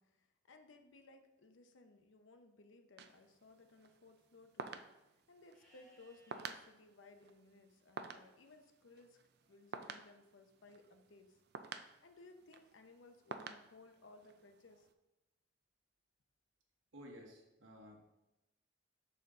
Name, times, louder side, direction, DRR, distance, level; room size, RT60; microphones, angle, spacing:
voice 1, 0.0-4.8 5.3-9.2 9.5-11.4 12.0-14.9, left 3 dB, 75° left, 6 dB, 0.7 m, -61 dB
sound 1, 3.0-14.9, right 5 dB, 55° right, 0.4 m, -52 dB
Livestock farm animals working animals, 5.5-6.5 9.4-10.3, equal, ahead, 1.7 m, -70 dB
voice 2, 16.9-18.0, equal, 75° right, 1 dB, 1.2 m, -54 dB
6.9 x 4.3 x 3.7 m, 0.96 s
head